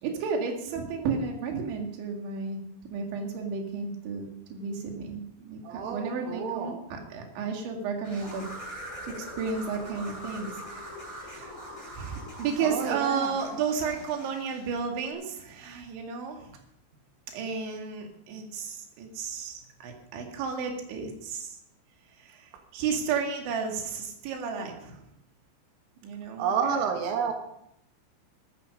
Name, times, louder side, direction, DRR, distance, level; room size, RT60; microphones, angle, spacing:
voice 1, 0.0-8.7 9.0-10.5 10.7-11.5 11.9-16.5 17.3-21.6 22.2-25.0 26.0-26.8, right 5 dB, 70° right, 2 dB, 4.3 m, -33 dB
voice 2, 5.7-6.8 12.6-13.3 26.4-27.3, right 7 dB, 90° right, 3 dB, 4.1 m, -29 dB
sound 1, 8.0-14.7, equal, 10° left, 7.5 m, -42 dB
13.5 x 13.5 x 5.2 m, 0.77 s
omnidirectional pair, 5.7 m